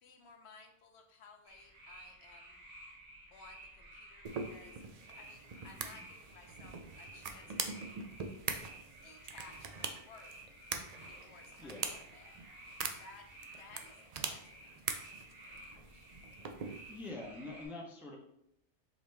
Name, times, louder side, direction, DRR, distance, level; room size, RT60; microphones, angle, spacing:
voice 1, 0.0-2.6 3.3-4.8 5.1-8.0 9.0-10.3 11.0-12.4 12.8-13.3 13.6-14.0 14.3-16.1, left 4 dB, 70° left, 4 dB, 0.9 m, -58 dB
sound 1, 1.4-17.7, right 1 dB, 85° right, 2.0 m, -54 dB
sound 2, 4.2-17.1, right 5 dB, 65° right, 0.3 m, -43 dB
voice 2, 5.7-6.1 11.3-12.0 16.9-18.2, left 2 dB, ahead, -1 dB, 0.5 m, -46 dB
4.8 x 3.3 x 3.3 m, 0.76 s
omnidirectional pair, 1.2 m